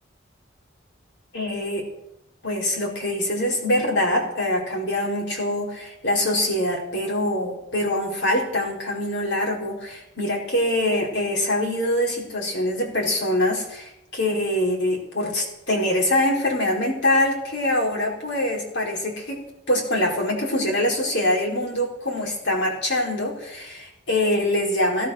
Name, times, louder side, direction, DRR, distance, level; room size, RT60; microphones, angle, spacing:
voice 1, 1.3-1.8 2.4-25.1, left 1 dB, 65° left, -1 dB, 4.9 m, -24 dB
16.5 x 12.0 x 6.6 m, 0.85 s
head